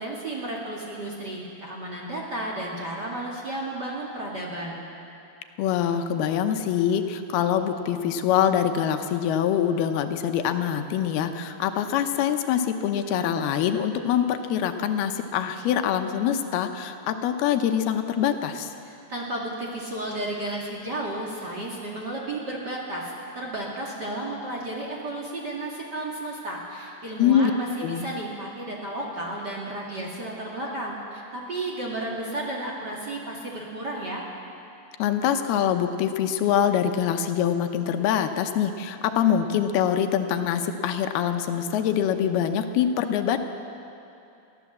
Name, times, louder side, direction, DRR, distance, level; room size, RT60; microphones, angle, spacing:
voice 1, 0.0-4.8 18.8-34.2, right 1 dB, 35° right, -2 dB, 2.2 m, -33 dB
voice 2, 5.6-18.7 27.2-27.5 27.8-28.1 35.0-43.4, left 9 dB, 85° left, 7 dB, 2.9 m, -24 dB
23.0 x 15.0 x 7.4 m, 2.7 s
omnidirectional pair, 4.4 m